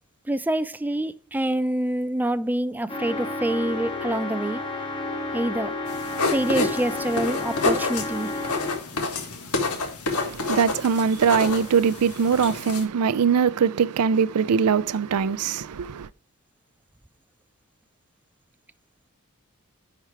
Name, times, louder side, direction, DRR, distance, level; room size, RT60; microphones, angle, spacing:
voice 1, 0.3-4.6 5.3-5.7 6.3-8.3, right 1 dB, 10° right, 0.3 m, -26 dB
sound 1, 2.9-9.0, left 2 dB, 25° left, 1.7 m, -31 dB
sound 2, 5.9-12.8, left 3 dB, 80° left, 1.8 m, -28 dB
voice 2, 10.1-16.1, right 6 dB, 85° right, 0.4 m, -22 dB
10.5 x 4.5 x 4.8 m
head